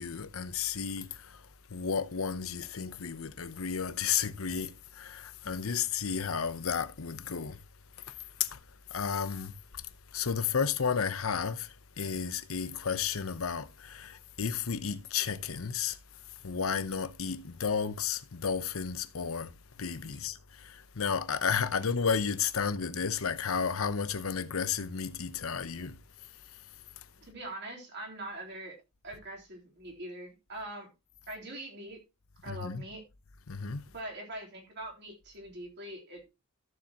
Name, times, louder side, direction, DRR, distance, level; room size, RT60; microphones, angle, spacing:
voice 1, 0.0-1.4 1.7-7.6 8.4-8.6 8.9-9.5 10.1-11.7 12.0-16.0 16.4-19.5 19.8-26.0 32.5-32.8 33.5-33.8, left 6 dB, 80° left, 0.8 m, -32 dB
voice 2, 27.2-28.8 29.0-30.9 31.3-32.0 32.4-33.0 33.9-36.3, right 1 dB, 55° right, 3.6 m, -43 dB
14.0 x 7.3 x 2.9 m
head